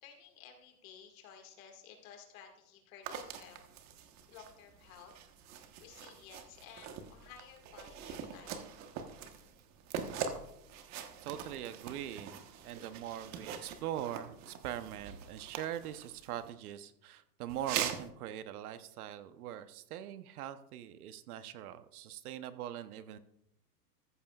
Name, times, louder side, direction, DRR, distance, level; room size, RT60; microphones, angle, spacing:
voice 1, 0.0-3.6 4.3-5.1 5.8-8.6, left 7 dB, 55° left, 3 dB, 2.1 m, -54 dB
sound 1, 3.0-16.5 17.5-18.1, right 8 dB, 35° right, 1.2 m, -43 dB
voice 2, 11.2-12.3 12.6-23.2, right 11 dB, 60° right, 12 dB, 1.0 m, -42 dB
14.5 x 13.0 x 2.4 m, 0.78 s
hypercardioid pair, 125°, 49 cm